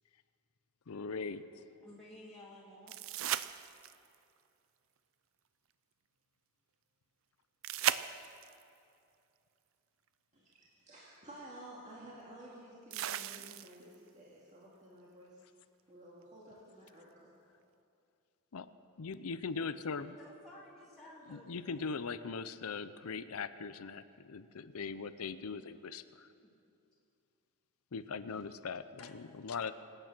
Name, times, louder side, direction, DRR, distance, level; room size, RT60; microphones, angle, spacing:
voice 1, 0.9-1.6 18.5-18.7 19.0-20.2 21.3-26.3 27.9-29.7, left 5 dB, 75° left, 13 dB, 0.6 m, -40 dB
voice 2, 1.8-2.9 20.2-22.1 26.4-26.5 29.0-29.2 29.5-29.7, left 1 dB, ahead, -8 dB, 2.1 m, -54 dB
sound 1, 2.9-4.2 7.6-8.6 10.5-10.6 12.9-13.9 16.9-17.0, right 11 dB, 60° right, 0.4 m, -36 dB
voice 3, 10.3-15.4 15.9-17.4 21.4-21.5, right 1 dB, 30° right, -6 dB, 2.1 m, -53 dB
25.0 x 8.9 x 6.1 m, 2.6 s
head